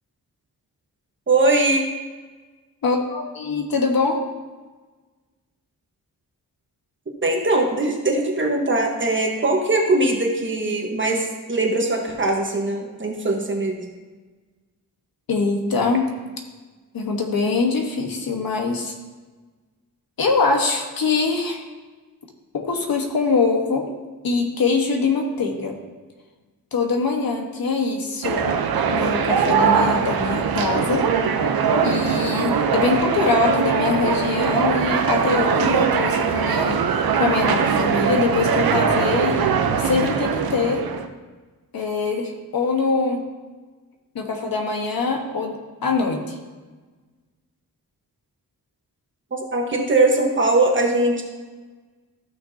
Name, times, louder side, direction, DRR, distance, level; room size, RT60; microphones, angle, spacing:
voice 1, 1.3-1.8 7.2-13.9 49.3-51.2, right 2 dB, 30° right, 1 dB, 1.3 m, -21 dB
voice 2, 2.8-4.2 15.3-16.1 16.9-18.9 20.2-21.6 22.5-23.9 24.2-25.8 26.7-28.6 28.9-31.1 31.8-39.5 39.8-40.9 41.7-43.2 44.1-46.4, left 4 dB, 75° left, 2 dB, 1.4 m, -23 dB
sound 1, 28.2-41.1, right 6 dB, 75° right, 0.8 m, -21 dB
14.5 x 6.4 x 2.8 m, 1.3 s
wide cardioid pair, 140°, 36 cm